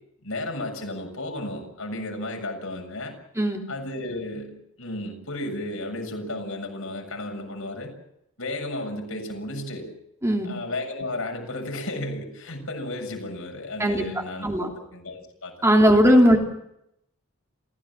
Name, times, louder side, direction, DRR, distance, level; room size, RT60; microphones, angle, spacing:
voice 1, 0.2-3.1 3.7-4.5 4.8-7.9 8.4-9.9 10.4-15.5, left 1 dB, 75° left, 3 dB, 7.2 m, -33 dB
voice 2, 15.6-16.4, equal, 15° right, 1 dB, 3.1 m, -18 dB
29.0 x 16.5 x 7.4 m, 0.80 s
head